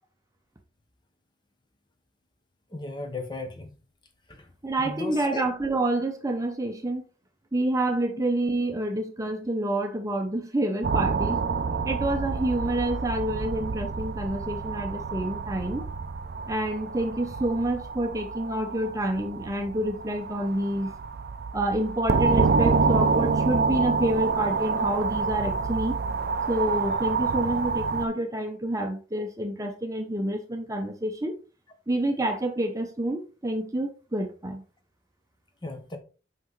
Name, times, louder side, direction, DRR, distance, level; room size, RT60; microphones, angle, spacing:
voice 1, 2.7-3.7 4.3-4.5 4.8-5.4 27.2-27.3 35.6-36.0, left 2 dB, 25° left, 1.0 m, -35 dB
voice 2, 4.6-7.1 7.5-11.4 11.8-15.8 16.5-20.9 21.5-26.0 26.5-31.3 31.9-34.6, right 1 dB, 20° right, 0.7 m, -28 dB
sound 1, 10.8-28.1, right 4 dB, 55° right, 0.5 m, -28 dB
5.9 x 5.5 x 3.2 m
head